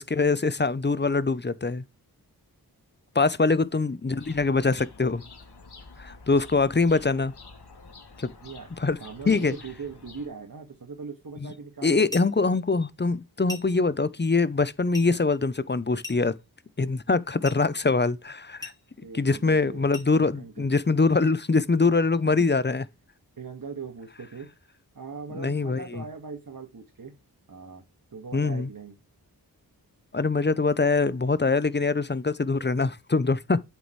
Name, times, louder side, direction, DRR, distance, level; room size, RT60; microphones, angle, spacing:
voice 1, 0.0-1.8 3.1-5.2 6.0-7.3 8.2-8.3 8.8-9.0 9.3-9.5 11.8-16.3 16.8-18.7 19.1-22.8 25.4-26.0 28.3-28.7 30.1-33.6, left 3 dB, 30° left, 0.7 m, -23 dB
sound 1, 4.2-10.3, left 4 dB, 80° left, 2.5 m, -48 dB
voice 2, 9.0-12.3 19.0-19.9 20.2-20.7 23.4-24.5 24.9-27.1 27.5-27.8 28.1-29.0, right 5 dB, 55° right, 2.0 m, -40 dB
sound 2, 12.1-12.4 13.5-13.8 14.9-15.2 16.0-16.4 17.4-17.7 18.6-18.9 19.9-20.2, left 3 dB, 10° left, 3.7 m, -40 dB
8.4 x 6.9 x 3.3 m
wide cardioid pair, 70°, 39 cm